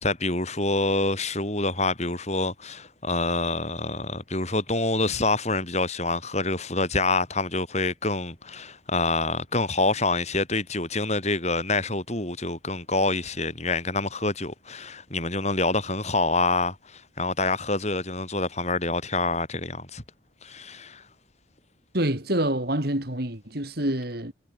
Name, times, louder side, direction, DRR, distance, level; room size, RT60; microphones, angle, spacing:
voice 1, 0.0-20.0 20.4-21.0, left 2 dB, 35° left, 6.7 m, -26 dB
voice 2, 21.9-24.3, right 1 dB, 55° right, 4.1 m, -27 dB
head